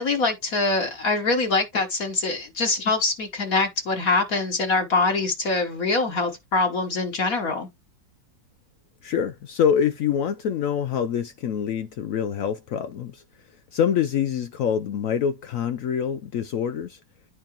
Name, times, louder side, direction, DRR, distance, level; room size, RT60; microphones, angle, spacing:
voice 1, 0.0-7.7, left 3 dB, 55° left, 1.4 m, -24 dB
voice 2, 9.0-13.2 13.7-17.0, left 8 dB, 90° left, 0.7 m, -25 dB
10.5 x 4.7 x 2.9 m
omnidirectional pair, 2.0 m